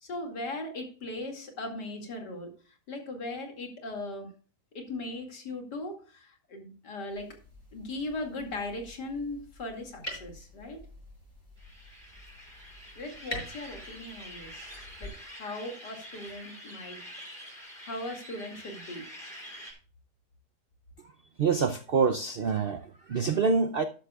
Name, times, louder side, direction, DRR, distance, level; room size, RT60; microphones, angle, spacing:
voice 1, 0.0-4.3 4.7-7.3 7.7-10.8 13.0-17.1 17.8-19.1, left 2 dB, 85° left, 3 dB, 2.9 m, -38 dB
sound 1, 7.1-15.1, equal, 25° left, 6.3 m, -46 dB
sound 2, 11.6-19.7, equal, 30° right, 4.8 m, -46 dB
voice 2, 21.4-23.8, right 5 dB, 65° right, 8 dB, 0.5 m, -26 dB
12.5 x 10.5 x 2.3 m, 0.38 s
omnidirectional pair, 1.8 m